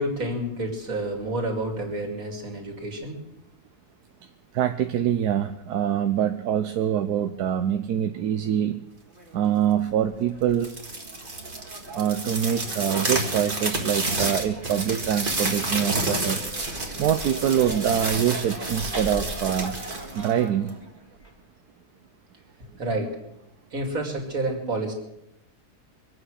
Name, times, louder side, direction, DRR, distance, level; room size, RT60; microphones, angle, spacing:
voice 1, 0.0-3.2 22.7-23.2 23.7-24.9, right 1 dB, 60° right, 1 dB, 3.2 m, -29 dB
voice 2, 4.5-8.8 9.3-10.7 11.9-16.4 17.0-19.8 20.1-20.7, right 9 dB, 80° right, 8 dB, 1.3 m, -24 dB
sound 1, 10.5-20.8, right 2 dB, 35° right, 2.2 m, -30 dB
24.0 x 8.9 x 6.4 m, 0.89 s
omnidirectional pair, 1.7 m